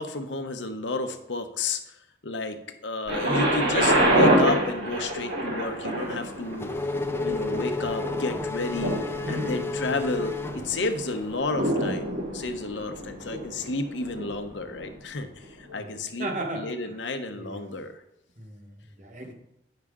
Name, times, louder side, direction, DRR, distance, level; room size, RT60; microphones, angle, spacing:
voice 1, 0.0-1.8 2.2-6.7 7.2-16.3 16.5-18.0, left 3 dB, 80° left, 7 dB, 0.9 m, -31 dB
Thunder, 3.1-14.9 15.7-15.8, right 1 dB, 80° right, 3.4 m, -27 dB
Race car auto racing / Accelerating revving vroom, 6.0-11.3, left 3 dB, 15° left, 0.4 m, -32 dB
voice 2, 9.2-10.0 15.8-17.0 17.3-17.7 18.4-19.3, right 1 dB, 40° right, 2 dB, 1.2 m, -36 dB
9.5 x 5.7 x 3.6 m, 0.81 s
head